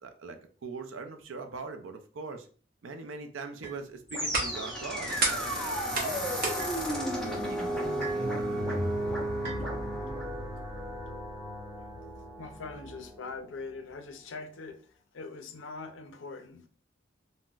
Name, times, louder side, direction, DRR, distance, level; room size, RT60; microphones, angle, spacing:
voice 1, 0.0-2.5 2.8-6.4 6.7-8.9, right 4 dB, 75° right, 0.5 m, -42 dB
sound 1, 3.6-3.8 5.1-5.4 6.6-6.8 8.0-8.3 9.4-9.7, right 5 dB, 30° right, 1.5 m, -41 dB
sound 2, 3.8-9.6, right 3 dB, 50° right, 0.8 m, -37 dB
sound 3, 4.1-13.2, equal, 5° left, 0.6 m, -33 dB
voice 2, 12.4-14.9 15.1-16.7, left 4 dB, 70° left, 0.4 m, -42 dB
3.9 x 2.1 x 2.3 m
head